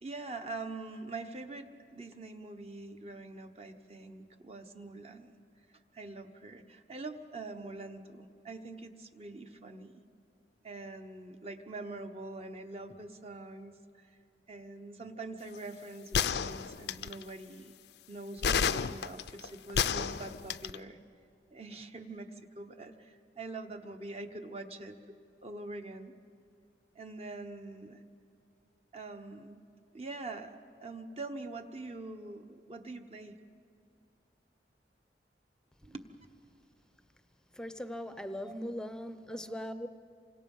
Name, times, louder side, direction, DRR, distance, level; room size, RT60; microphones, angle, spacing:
voice 1, 0.0-5.3 5.9-9.9 10.6-14.2 14.5-17.7 18.1-21.0 21.5-22.3 22.5-25.0 25.4-26.1 26.9-28.0 28.9-29.6 29.9-33.3 35.8-36.0 38.4-38.6 39.4-39.6, right 2 dB, 35° right, 1.1 m, -44 dB
sound 1, 16.1-17.2 18.4-20.8, left 7 dB, 70° left, 0.5 m, -30 dB
voice 2, 37.6-39.9, equal, 5° left, 0.7 m, -39 dB
28.0 x 25.5 x 5.5 m
head